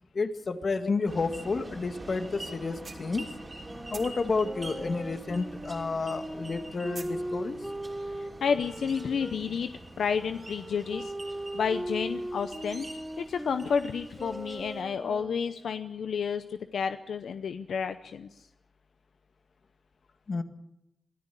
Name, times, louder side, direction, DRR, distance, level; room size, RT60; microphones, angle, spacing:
voice 1, 0.1-3.3 3.9-7.6 20.3-20.4, left 4 dB, 55° left, 8 dB, 1.9 m, -30 dB
sound 1, 1.1-14.8, right 1 dB, 30° right, 3.3 m, -45 dB
sound 2, 2.8-3.6 3.9-5.8 6.0-7.2, right 3 dB, 55° right, 3.4 m, -46 dB
sound 3, 3.6-9.4 10.1-15.8, right 1 dB, 5° right, 2.9 m, -39 dB
voice 2, 8.0-9.7 10.0-11.1 11.5-12.9 13.2-18.3, left 6 dB, 90° left, 9 dB, 0.7 m, -31 dB
23.0 x 13.5 x 8.4 m, 0.86 s
cardioid pair, 65°, 0 cm